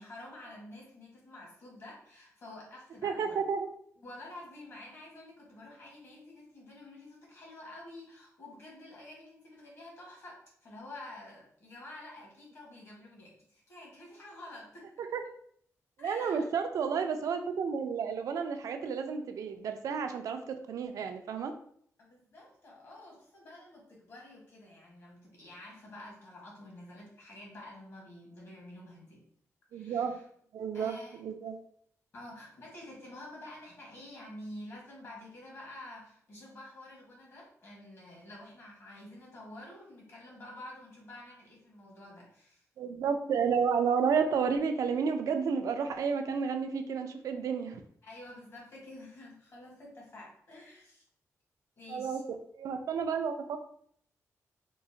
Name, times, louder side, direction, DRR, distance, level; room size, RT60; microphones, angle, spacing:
voice 1, 0.0-3.4 4.0-14.9 16.0-16.5 22.0-29.2 29.7-30.3 30.7-31.2 32.1-42.6 48.0-51.0 51.8-52.2, left 1 dB, 50° left, -3 dB, 1.2 m, -49 dB
voice 2, 3.0-3.7 15.0-15.2 16.0-21.5 29.7-30.2 30.5-31.6 42.8-47.8 51.9-53.6, right 6 dB, 75° right, 7 dB, 0.3 m, -31 dB
3.8 x 2.0 x 2.6 m, 0.64 s
wide cardioid pair, 150°, 6 cm